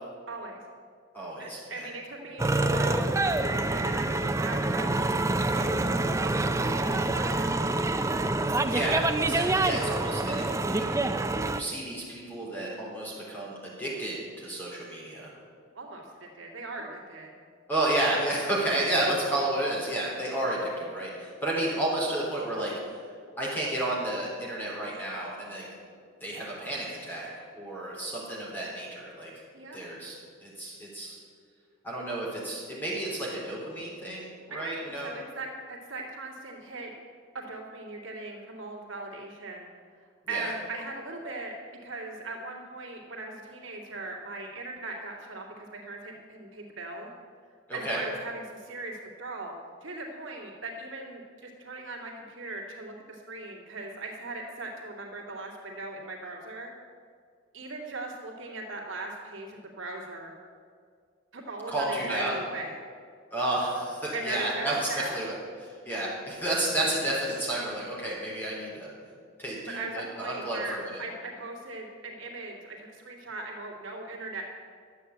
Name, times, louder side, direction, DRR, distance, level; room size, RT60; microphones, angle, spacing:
voice 1, 0.3-0.6 1.4-5.2 5.5-8.0 15.7-17.3 21.7-21.8 29.5-29.8 34.6-36.9 37.3-39.7 40.3-47.1 47.7-49.5 49.8-56.7 57.5-60.3 61.3-62.8 64.1-65.2 69.7-74.4, right 2 dB, 70° right, -1 dB, 2.4 m, -39 dB
voice 2, 1.1-1.9 8.6-10.9 11.5-15.3 17.7-23.0 23.4-25.7 26.2-27.3 27.5-29.3 29.7-31.2 31.8-35.1 40.3-40.5 47.7-48.0 61.7-62.3 63.3-65.4 65.6-68.9 69.4-71.0, right 1 dB, 10° left, -5 dB, 3.9 m, -31 dB
sound 1, 2.4-11.6, right 2 dB, 15° right, 0.4 m, -26 dB
12.0 x 8.1 x 8.4 m, 2.1 s
head